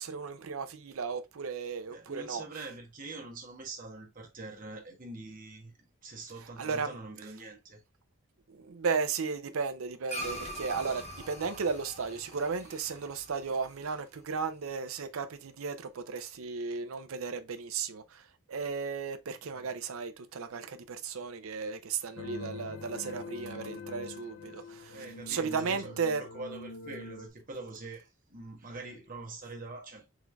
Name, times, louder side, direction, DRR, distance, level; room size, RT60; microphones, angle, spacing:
voice 1, 0.0-2.6 6.6-7.0 8.5-26.3, right 5 dB, 75° right, 0.5 m, -35 dB
voice 2, 1.9-7.8 19.5-19.7 24.6-30.1, right 3 dB, 40° right, 1.2 m, -45 dB
sound 1, 10.1-14.7, equal, 30° left, 1.2 m, -43 dB
sound 2, 22.2-27.3, left 3 dB, 85° left, 0.5 m, -44 dB
3.8 x 3.1 x 3.4 m
head